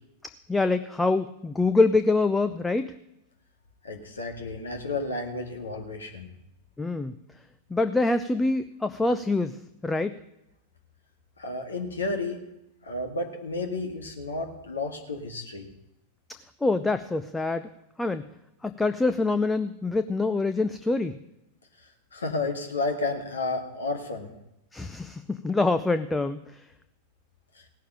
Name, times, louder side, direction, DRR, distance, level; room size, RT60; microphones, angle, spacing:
voice 1, 0.5-2.9 6.8-7.1 7.7-9.6 9.8-10.2 16.6-17.7 18.0-18.3 18.6-21.2 24.7-26.6, left 3 dB, 10° left, 10 dB, 0.5 m, -25 dB
voice 2, 3.8-6.3 11.4-12.4 12.8-15.7 21.8-24.3 27.6-27.7, left 3 dB, 70° left, 3 dB, 1.9 m, -32 dB
17.0 x 6.6 x 9.1 m, 0.86 s
figure-of-eight pair, 90°, 0 cm